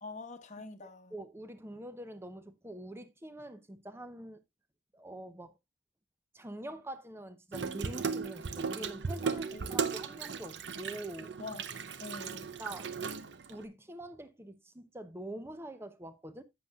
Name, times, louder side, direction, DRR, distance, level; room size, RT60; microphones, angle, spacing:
voice 1, 0.0-1.2 9.5-10.1 11.4-11.6 12.0-12.5, left 3 dB, 40° left, 1.1 m, -45 dB
voice 2, 0.6-4.4 4.9-5.5 6.3-11.4 12.6-13.0 13.5-16.4, right 1 dB, 15° right, 0.7 m, -45 dB
Water tap faucet / Sink (filling or washing), 7.5-13.6, right 5 dB, 70° right, 0.7 m, -36 dB
11.0 x 7.9 x 2.4 m
head